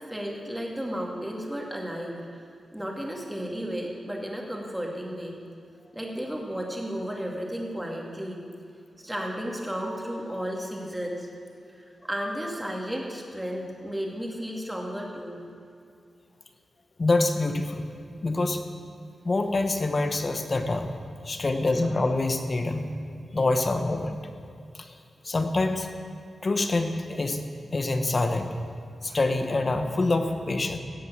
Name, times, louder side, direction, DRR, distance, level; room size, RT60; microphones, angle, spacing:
voice 1, 0.1-2.4 2.7-5.4 5.9-8.4 9.0-11.3 11.7-15.4 23.3-23.4, equal, 5° right, -1 dB, 2.3 m, -33 dB
voice 2, 17.0-17.9 18.2-18.6 19.2-20.9 21.2-22.9 23.3-24.2 24.8-24.9 25.2-25.9 26.4-27.4 27.7-28.5 29.0-30.8, left 2 dB, 40° left, 6 dB, 1.1 m, -25 dB
17.0 x 7.9 x 6.3 m, 2.4 s
wide cardioid pair, 90°, 0 cm